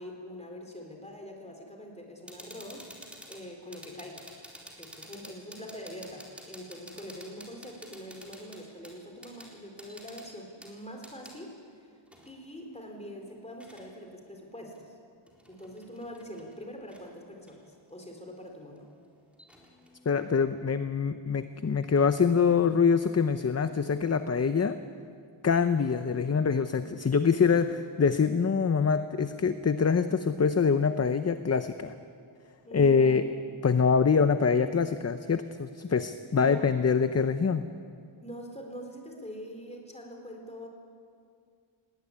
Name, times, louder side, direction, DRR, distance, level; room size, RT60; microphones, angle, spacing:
voice 1, 0.0-4.3 4.8-12.0 12.3-14.9 15.5-18.8 27.4-27.9 32.6-33.3 36.3-36.8 38.2-40.7, equal, 15° left, 2 dB, 3.9 m, -44 dB
sound 1, 2.3-11.4 12.1-13.9 14.7-14.8 15.3-16.6 16.9-17.0 17.5-20.3, equal, ahead, 3.9 m, -51 dB
voice 2, 20.1-24.8 25.4-31.9 32.7-33.2 33.6-37.7, left 5 dB, 30° left, 10 dB, 0.6 m, -25 dB
19.0 x 18.5 x 9.8 m, 2.3 s
wide cardioid pair, 125°, 50 cm